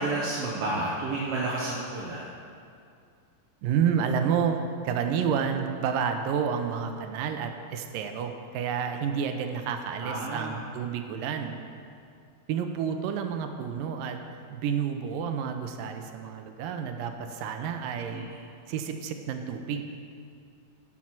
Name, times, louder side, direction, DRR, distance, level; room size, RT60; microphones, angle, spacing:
voice 1, 0.0-2.3 10.0-10.6 18.1-18.4, right 2 dB, 65° right, -5 dB, 1.5 m, -31 dB
voice 2, 3.6-4.6 4.8-11.5 12.5-14.2 14.5-18.2 18.7-19.9, right 7 dB, 85° right, 6 dB, 2.3 m, -30 dB
12.5 x 6.1 x 6.0 m, 2.4 s
omnidirectional pair, 4.0 m